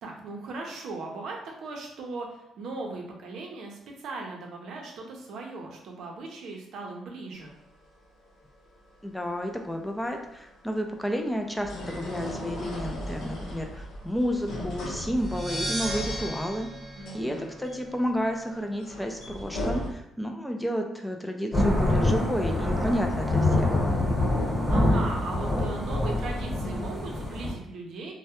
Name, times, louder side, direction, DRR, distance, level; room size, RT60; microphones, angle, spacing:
voice 1, 0.0-7.5 17.0-17.4 24.7-28.1, right 3 dB, 75° right, 0 dB, 0.5 m, -38 dB
sound 1, 7.4-19.9, equal, 80° left, 0.6 m, -38 dB
voice 2, 9.0-16.7 17.1-23.7, equal, 5° left, 3 dB, 0.3 m, -31 dB
sound 2, 15.2-18.0, right 1 dB, 45° right, 0.8 m, -35 dB
Thunder / Rain, 21.5-27.5, left 1 dB, 30° left, 1.1 m, -25 dB
2.2 x 2.0 x 2.8 m, 0.85 s
cardioid pair, 90°, 0 cm